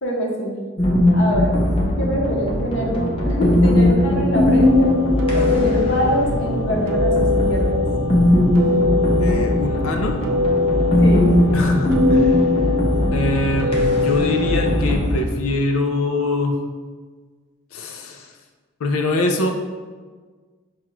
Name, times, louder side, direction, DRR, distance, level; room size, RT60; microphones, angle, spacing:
voice 1, 0.0-0.6 1.1-1.6 2.0-5.0 5.3-7.8 11.0-11.4, equal, 60° left, -2 dB, 0.8 m, -24 dB
sound 1, 0.8-15.3, left 1 dB, 25° left, 0.6 m, -19 dB
sound 2, 4.5-14.8, left 3 dB, 75° right, 0.5 m, -23 dB
voice 2, 9.2-10.2 11.5-12.5 13.1-16.6 17.7-18.3 18.8-19.5, left 2 dB, 85° left, 4 dB, 0.4 m, -23 dB
5.8 x 2.4 x 3.0 m, 1.5 s
head